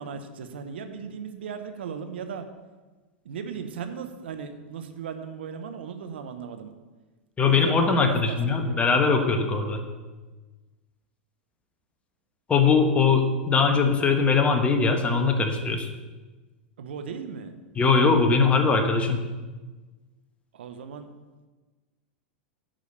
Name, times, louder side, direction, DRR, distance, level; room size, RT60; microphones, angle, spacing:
voice 1, 0.0-2.5 3.2-6.7 7.4-8.8 16.8-17.5 20.5-21.1, right 6 dB, 75° right, 8 dB, 1.0 m, -37 dB
voice 2, 7.4-9.8 12.5-15.9 17.8-19.3, left 4 dB, 20° left, 5 dB, 1.3 m, -21 dB
9.1 x 5.1 x 6.7 m, 1.3 s
hypercardioid pair, 105°, 6 cm